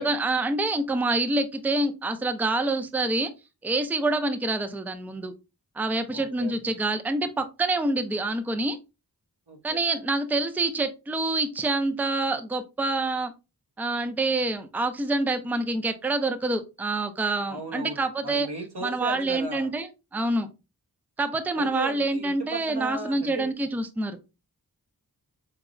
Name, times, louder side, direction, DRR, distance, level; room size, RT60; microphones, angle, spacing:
voice 1, 0.0-3.3 3.6-5.3 5.8-8.8 9.6-13.3 13.8-18.5 18.8-19.9 20.1-20.5 21.2-24.2, right 2 dB, 5° right, 9 dB, 0.4 m, -26 dB
voice 2, 6.1-6.5 9.5-9.8 17.5-19.7 21.6-23.5, right 2 dB, 90° right, 2 dB, 0.9 m, -36 dB
4.6 x 2.0 x 2.4 m, 0.27 s
wide cardioid pair, 40°, 38 cm